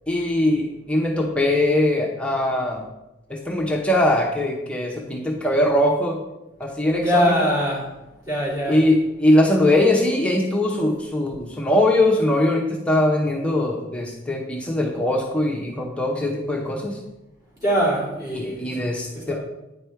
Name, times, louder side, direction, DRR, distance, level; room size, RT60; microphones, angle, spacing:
voice 1, 0.1-2.8 3.3-6.2 6.6-7.2 8.7-17.0 18.3-19.3, left 1 dB, 5° left, -1 dB, 0.8 m, -21 dB
voice 2, 6.9-7.8 8.3-8.8 17.6-18.8 19.1-19.3, equal, 20° right, -9 dB, 3.3 m, -22 dB
9.0 x 5.0 x 4.6 m, 0.96 s
head